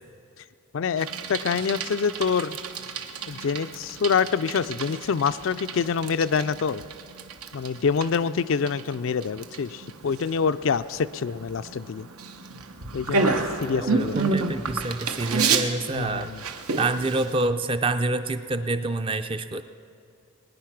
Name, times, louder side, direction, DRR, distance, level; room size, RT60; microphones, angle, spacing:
voice 1, 0.7-2.6 3.3-6.8 7.5-12.1 12.9-13.3 13.6-14.2 15.9-16.4, left 6 dB, 65° left, 13 dB, 0.4 m, -26 dB
Bicycle, 1.0-17.5, right 4 dB, 90° right, 1.0 m, -31 dB
voice 2, 13.7-16.3 16.8-19.6, right 2 dB, 25° right, 10 dB, 0.4 m, -27 dB
21.0 x 9.8 x 5.9 m, 2.5 s
head